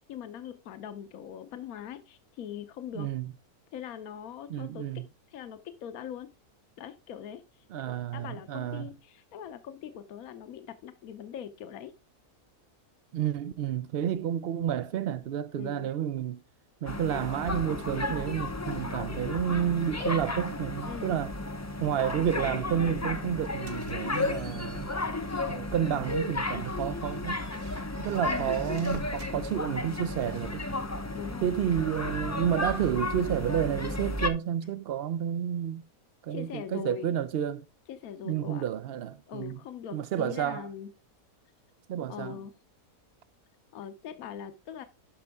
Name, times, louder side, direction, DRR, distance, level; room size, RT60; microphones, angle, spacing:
voice 1, 0.1-3.1 3.7-4.9 5.3-6.3 6.8-11.9 15.5-15.9 20.9-21.2 28.2-28.6 31.1-31.6 36.3-37.2 37.9-38.6 39.3-40.9 42.1-42.5 43.7-44.8, left 9 dB, 70° left, 1.2 m, -41 dB
voice 2, 3.0-3.3 4.5-5.0 7.7-8.9 13.1-16.4 16.8-21.3 21.8-24.9 25.5-27.4 28.0-30.6 31.4-35.8 36.2-37.6 38.2-39.6 39.9-40.7 41.9-42.4, right 10 dB, 80° right, 0.5 m, -30 dB
sound 1, 16.9-34.3, left 2 dB, 25° left, 0.3 m, -33 dB
sound 2, 23.4-25.5 26.0-26.1 26.6-29.4, right 5 dB, 50° right, 0.8 m, -50 dB
11.5 x 5.4 x 3.5 m
omnidirectional pair, 1.6 m